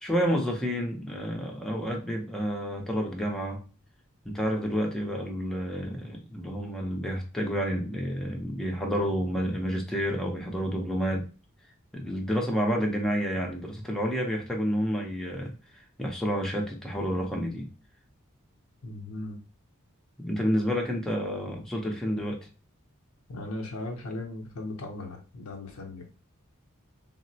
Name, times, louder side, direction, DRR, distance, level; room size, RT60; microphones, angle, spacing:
voice 1, 0.0-3.6 4.3-11.2 11.9-15.5 16.0-17.7 20.2-22.4, equal, 5° left, 0.5 m, -29 dB
voice 2, 18.8-19.4 23.3-26.1, left 2 dB, 80° left, 0.6 m, -37 dB
3.6 x 2.0 x 2.6 m
head